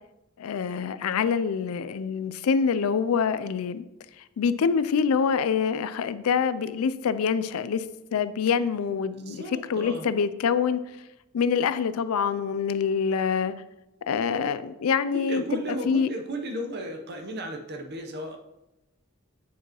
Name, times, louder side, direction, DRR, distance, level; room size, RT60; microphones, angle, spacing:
voice 1, 0.4-3.8 4.4-7.9 8.1-9.4 9.7-10.8 11.3-13.5 14.1-15.6 15.9-16.1, left 6 dB, 80° left, 14 dB, 0.4 m, -25 dB
voice 2, 9.3-10.1 15.1-18.4, right 1 dB, 50° right, 4 dB, 0.8 m, -34 dB
9.1 x 4.6 x 3.0 m, 0.94 s
head